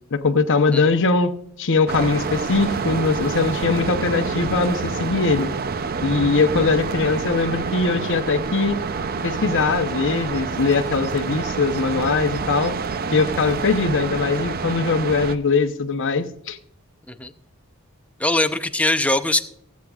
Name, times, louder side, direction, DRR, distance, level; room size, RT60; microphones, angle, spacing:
voice 1, 0.1-1.3 1.6-5.5 6.0-8.8 9.2-12.7 13.1-16.6, left 4 dB, 60° left, 9 dB, 0.9 m, -21 dB
sound 1, 1.9-15.4, right 4 dB, 45° right, 0.6 m, -27 dB
voice 2, 18.2-19.5, left 2 dB, 5° left, 9 dB, 0.6 m, -21 dB
22.5 x 8.3 x 2.4 m, 0.69 s
head